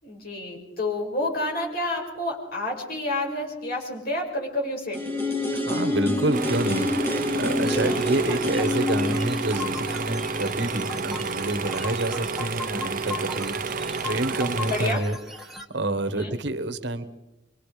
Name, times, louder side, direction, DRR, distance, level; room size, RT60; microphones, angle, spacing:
voice 1, 0.0-5.0 7.8-8.0 14.5-15.0 16.1-16.3, left 1 dB, 55° left, -1 dB, 6.6 m, -29 dB
sound 1, 4.9-10.8 11.1-11.2, left 1 dB, 15° left, 6.4 m, -27 dB
voice 2, 5.5-15.2 15.4-17.0, right 1 dB, 65° right, 10 dB, 1.4 m, -28 dB
sound 2, 6.3-14.9, right 4 dB, 45° right, 0.9 m, -31 dB
sound 3, 7.7-15.6, left 2 dB, ahead, 1.9 m, -38 dB
25.5 x 24.5 x 5.1 m, 0.96 s
head